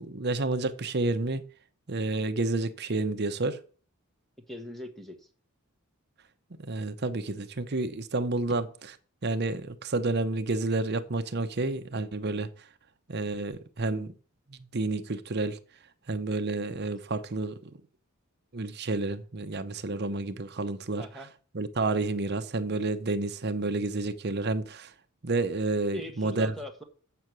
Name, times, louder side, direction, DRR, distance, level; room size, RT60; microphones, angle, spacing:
voice 1, 0.0-1.4 1.9-3.6 6.6-8.7 9.2-12.7 13.1-14.1 14.5-15.6 16.1-17.7 18.5-21.0 21.5-24.9 25.2-26.5, right 2 dB, 50° right, 0.8 m, -30 dB
voice 2, 4.5-5.3 21.0-21.3 25.9-26.8, left 1 dB, ahead, 1.3 m, -41 dB
8.1 x 6.5 x 6.1 m
head